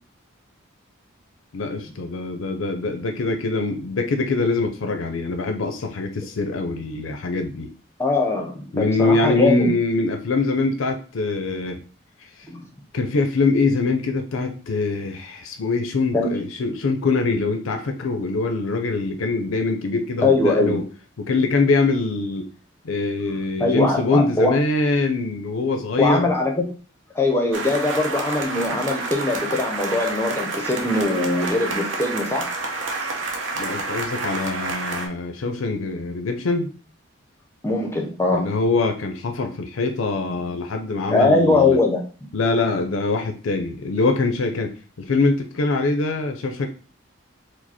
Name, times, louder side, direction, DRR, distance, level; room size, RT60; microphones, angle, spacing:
voice 1, 1.5-7.7 8.7-11.8 12.2-12.3 12.9-20.9 21.2-22.5 22.8-26.3 33.5-36.7 38.3-41.8 42.3-46.7, left 3 dB, 80° left, 5 dB, 0.5 m, -23 dB
voice 2, 8.0-9.7 12.5-12.6 16.1-16.3 20.2-20.8 23.6-24.5 26.0-26.7 27.1-32.6 37.6-38.5 41.1-42.0, left 2 dB, 10° left, 2 dB, 0.5 m, -21 dB
sound 1, 27.5-35.1, right 3 dB, 70° right, 0.8 m, -29 dB
4.9 x 2.0 x 4.1 m, 0.38 s
head